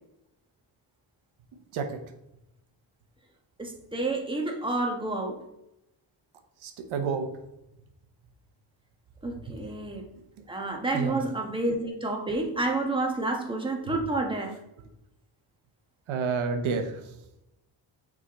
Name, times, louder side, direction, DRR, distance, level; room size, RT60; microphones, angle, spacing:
voice 1, 3.6-5.4 9.2-10.0 10.5-14.5, right 2 dB, 10° right, 1 dB, 1.3 m, -29 dB
voice 2, 6.6-7.3 10.9-11.2 13.9-14.0 16.1-17.2, right 5 dB, 85° right, 5 dB, 0.9 m, -29 dB
6.2 x 3.7 x 4.1 m, 0.88 s
cardioid pair, 75°, 47 cm